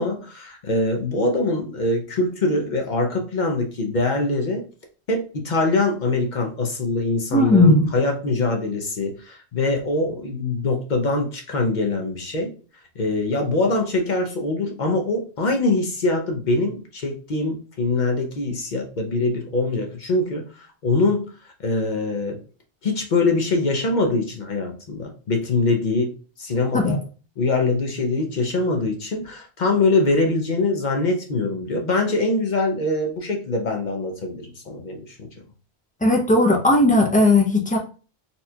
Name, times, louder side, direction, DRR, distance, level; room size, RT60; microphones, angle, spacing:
voice 1, 0.0-4.6 5.1-12.5 13.0-22.4 22.8-26.1 26.4-27.0 27.4-35.3, left 2 dB, 50° left, 2 dB, 0.6 m, -23 dB
voice 2, 7.3-7.8 26.7-26.9 36.0-37.8, left 2 dB, 15° left, 1 dB, 0.3 m, -16 dB
4.1 x 2.3 x 2.7 m, 0.38 s
omnidirectional pair, 1.1 m